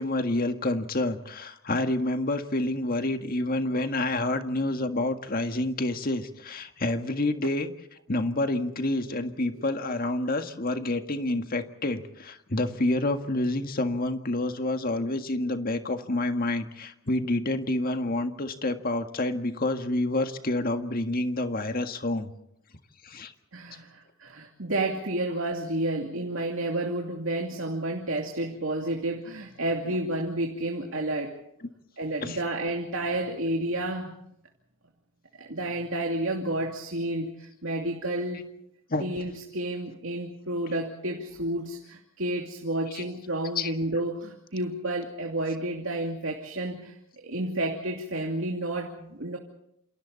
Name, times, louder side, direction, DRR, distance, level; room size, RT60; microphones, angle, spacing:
voice 1, 0.0-7.7 8.1-22.3 23.0-23.3 29.9-30.0 32.2-32.4 38.9-39.1 42.9-43.0 43.6-43.7, left 2 dB, 45° left, 7 dB, 1.8 m, -28 dB
voice 2, 23.5-31.4 32.0-34.1 35.4-38.5 39.0-47.0 47.2-49.4, right 1 dB, 65° right, 1 dB, 2.7 m, -30 dB
28.5 x 27.5 x 4.2 m, 0.75 s
head